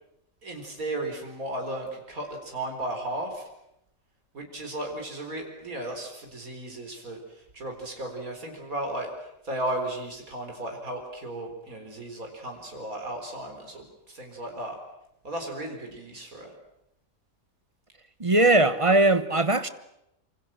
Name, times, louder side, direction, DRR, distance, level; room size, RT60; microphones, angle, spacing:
voice 1, 0.4-3.5 4.3-14.8 15.2-16.5, right 1 dB, 85° right, 4.6 m, -35 dB
voice 2, 18.2-19.7, right 2 dB, 25° right, 1.0 m, -20 dB
26.5 x 25.0 x 7.5 m
omnidirectional pair, 1.4 m